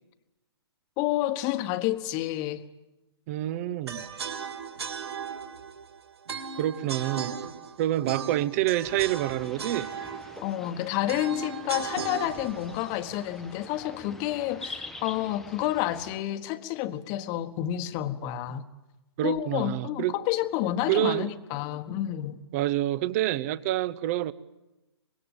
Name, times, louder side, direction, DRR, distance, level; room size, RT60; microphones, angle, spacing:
voice 1, 1.0-2.6 10.4-18.7 19.2-22.4, left 13 dB, 25° left, 1.3 m, -29 dB
voice 2, 3.3-4.1 6.6-7.4 7.8-9.9 19.2-20.1 20.9-21.3 22.5-24.3, right 14 dB, 35° right, 0.9 m, -27 dB
sound 1, 3.9-13.9, right 6 dB, 70° right, 3.2 m, -37 dB
sound 2, 8.8-16.2, left 2 dB, ahead, 1.0 m, -46 dB
25.0 x 21.5 x 9.0 m
hypercardioid pair, 140°, 14 cm